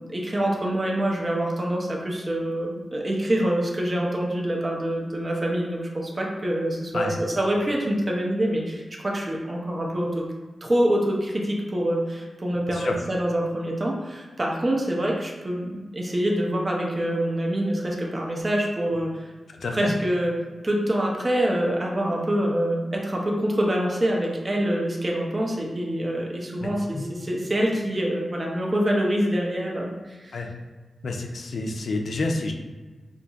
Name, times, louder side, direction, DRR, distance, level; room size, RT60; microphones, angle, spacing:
voice 1, 0.1-10.2 10.6-19.1 19.7-20.3 20.6-30.4, right 1 dB, 30° right, -1 dB, 0.5 m, -25 dB
voice 2, 19.6-19.9 26.6-27.0 30.3-30.5 31.0-32.5, left 2 dB, 70° left, 3 dB, 0.4 m, -29 dB
3.8 x 2.5 x 2.3 m, 1.3 s
wide cardioid pair, 105°, 0 cm